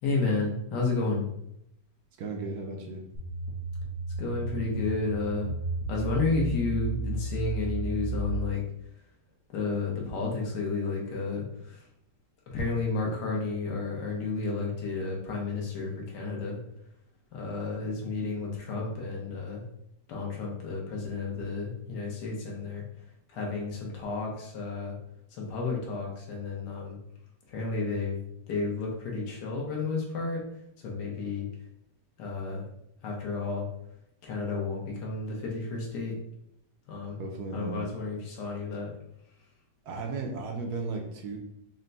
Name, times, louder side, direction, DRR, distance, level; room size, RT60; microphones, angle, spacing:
voice 1, 0.0-1.3 4.2-5.5 5.9-8.6 9.5-11.8 12.5-16.6 17.3-19.6 20.1-22.8 23.3-25.0 25.3-27.0 27.5-28.2 28.5-30.4 30.8-31.5 32.2-32.7 33.0-33.7 34.2-36.1 36.9-37.2 37.5-38.9, left 3 dB, 75° left, -1 dB, 1.6 m, -31 dB
voice 2, 2.2-3.0 37.2-37.8 39.8-41.4, right 3 dB, 70° right, 2 dB, 1.1 m, -35 dB
sound 1, 3.1-8.4, right 2 dB, 50° left, 1.6 m, -33 dB
4.3 x 2.2 x 3.9 m, 0.76 s
omnidirectional pair, 1.8 m